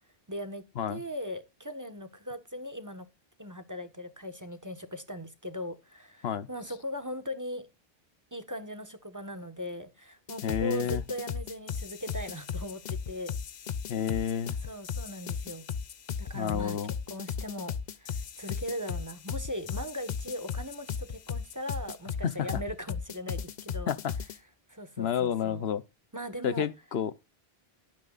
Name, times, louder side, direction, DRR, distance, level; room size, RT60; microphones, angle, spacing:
voice 1, 0.3-3.1 3.4-7.7 8.3-13.3 14.6-15.6 16.2-16.8 17.1-24.0 24.7-25.6 26.1-26.7, equal, 20° right, 1.4 m, -39 dB
sound 1, 10.3-24.4, left 6 dB, 50° left, 0.7 m, -36 dB
voice 2, 10.4-11.0 13.9-14.6 16.3-16.9 22.2-22.5 23.9-24.1 25.0-25.8 26.4-27.1, left 8 dB, 80° left, 1.1 m, -30 dB
16.5 x 9.3 x 2.5 m
omnidirectional pair, 1.0 m